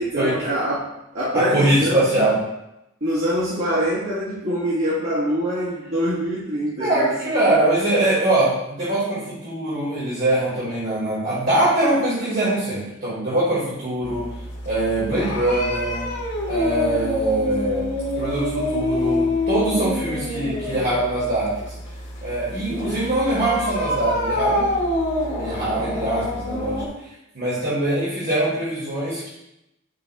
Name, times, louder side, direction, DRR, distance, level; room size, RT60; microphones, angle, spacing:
voice 1, 0.0-2.3 3.0-7.2 7.5-7.8, equal, 85° right, -10 dB, 1.6 m, -24 dB
voice 2, 1.3-2.3 6.8-14.2 14.6-16.1 16.5-17.9 18.2-21.5 22.2-24.7 25.4-26.8 27.3-29.3, right 1 dB, 55° right, -8 dB, 2.2 m, -22 dB
sound 1, 14.0-26.9, left 1 dB, 60° left, 1.7 m, -26 dB
9.0 x 5.2 x 2.3 m, 0.87 s
head